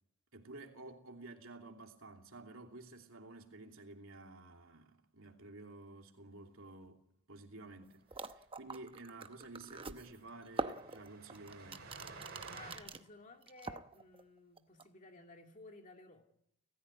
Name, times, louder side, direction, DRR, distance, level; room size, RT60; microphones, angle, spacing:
voice 1, 0.3-12.0, right 2 dB, 65° right, 3.0 m, -52 dB
sound 1, 7.8-7.9 8.1-13.0 13.4-14.2 14.6-14.9, right 3 dB, 25° right, 0.9 m, -43 dB
Train, 8.6-8.7 9.0-9.1 9.4-12.8, right 4 dB, 50° right, 7.0 m, -53 dB
voice 2, 12.5-16.2, left 3 dB, 35° left, 2.2 m, -56 dB
29.5 x 15.0 x 9.7 m
head